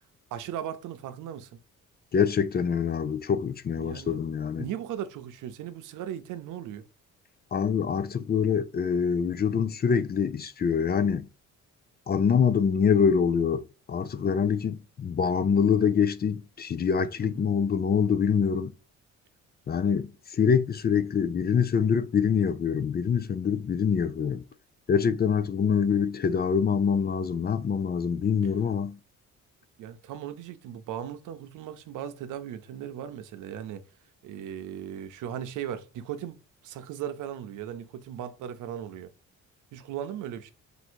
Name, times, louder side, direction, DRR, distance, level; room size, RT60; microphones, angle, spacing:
voice 1, 0.3-1.6 3.8-4.2 4.6-6.9 17.2-17.5 29.8-33.8 34.2-39.1 39.7-40.5, right 10 dB, 85° right, 0.7 m, -37 dB
voice 2, 2.1-4.7 7.5-11.3 12.1-18.7 19.7-24.4 24.9-29.0, left 6 dB, 35° left, 0.4 m, -25 dB
3.8 x 2.6 x 4.4 m
cardioid pair, 90°, 30 cm